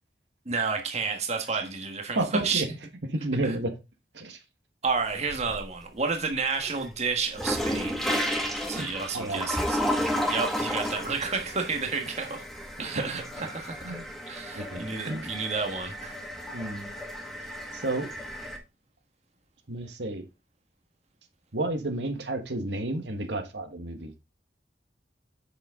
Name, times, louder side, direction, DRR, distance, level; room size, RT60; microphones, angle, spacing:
voice 1, 0.4-2.6 3.4-3.5 4.8-8.1 8.7-9.8 10.3-12.4 12.8-14.0 14.3-16.2, right 4 dB, 40° right, 1.5 m, -31 dB
voice 2, 2.1-2.7 3.1-3.7 4.1-4.4 8.7-9.5 13.4-13.5 13.8-14.1 14.5-15.3 16.5-16.9 17.7-18.1 19.7-20.2 21.5-24.1, right 2 dB, 80° right, 1.5 m, -31 dB
sound 1, 4.9-5.8 6.3-18.6, equal, ahead, 1.7 m, -33 dB
7.9 x 6.8 x 3.7 m
head